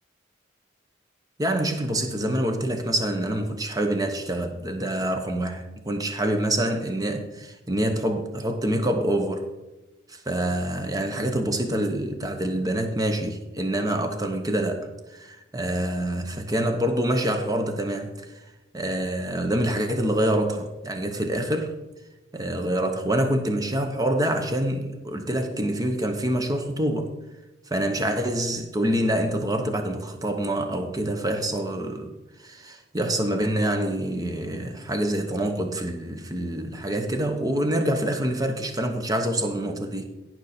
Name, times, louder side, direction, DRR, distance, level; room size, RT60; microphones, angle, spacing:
voice 1, 1.4-5.6 5.9-9.4 10.1-18.1 18.7-21.7 22.3-27.1 27.7-32.1 32.4-40.0, right 1 dB, 20° right, 0.9 m, -26 dB
16.5 x 6.1 x 4.3 m
head